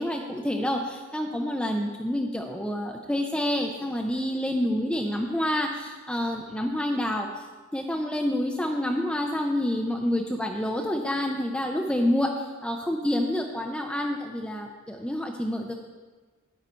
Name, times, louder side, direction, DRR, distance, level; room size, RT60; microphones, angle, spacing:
voice 1, 0.0-7.5 7.7-15.7, left 1 dB, 5° left, 1 dB, 0.5 m, -28 dB
9.4 x 9.1 x 4.4 m, 1.3 s
head